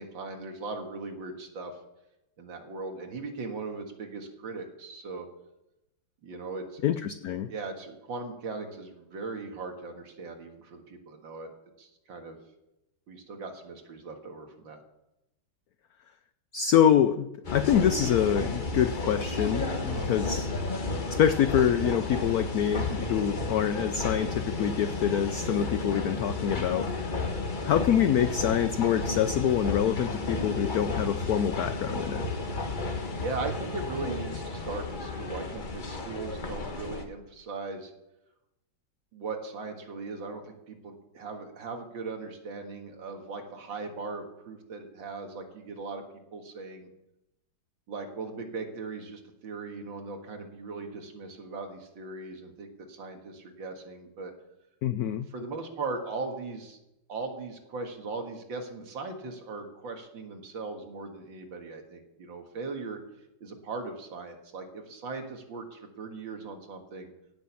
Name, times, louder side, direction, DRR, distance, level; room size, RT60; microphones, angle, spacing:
voice 1, 0.0-1.7 2.4-5.3 6.2-6.9 7.5-11.5 11.8-12.4 13.1-14.8 19.9-20.1 32.9-37.9 39.1-46.0 46.3-46.9 47.9-54.3 55.3-56.8 57.1-63.0 63.4-67.1, right 3 dB, 65° right, 4 dB, 2.4 m, -39 dB
voice 2, 6.8-7.5 16.5-20.5 21.1-27.3 27.6-32.2 54.8-55.3, left 9 dB, 75° left, 11 dB, 0.8 m, -26 dB
sound 1, 17.4-37.0, left 3 dB, 30° left, 1.1 m, -32 dB
17.0 x 6.4 x 7.1 m, 0.89 s
omnidirectional pair, 2.2 m